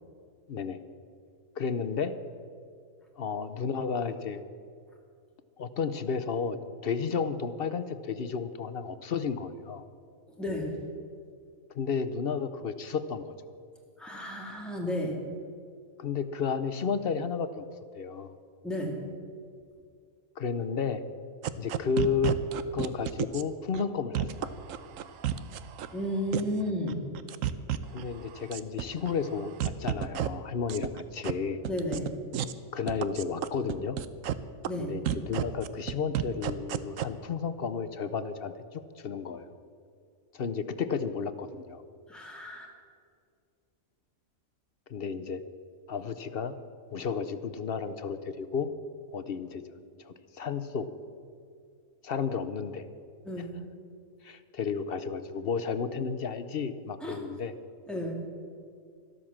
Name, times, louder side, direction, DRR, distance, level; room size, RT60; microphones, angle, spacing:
voice 1, 0.5-0.8 1.6-2.1 3.2-4.4 5.6-6.6 6.8-9.9 11.7-13.3 16.0-17.7 17.9-18.3 20.4-21.0 21.6-22.4 22.7-24.5 27.9-31.6 32.7-34.0 34.8-39.5 40.3-41.8 44.9-45.4 45.9-46.5 46.9-48.7 49.1-49.6 50.0-50.9 52.0-52.8 54.2-57.5, left 6 dB, 50° left, 11 dB, 0.8 m, -32 dB
voice 2, 10.3-10.8 14.0-15.2 18.6-19.0 25.9-27.0 31.6-32.1 34.7-35.0 42.1-42.7 53.2-53.6 57.0-57.3 57.9-58.1, left 1 dB, ahead, -2 dB, 2.6 m, -33 dB
sound 1, 21.4-23.4 23.7-23.8 24.1-25.9 26.3-26.6 26.9-28.0 28.3-29.1 29.4-30.3 30.7-31.3 31.6-32.1 32.3-32.5 32.9-34.3 34.6-34.7 35.0-37.0, right 11 dB, 75° right, 1.1 m, -30 dB
12.5 x 12.5 x 7.3 m, 2.3 s
omnidirectional pair, 1.4 m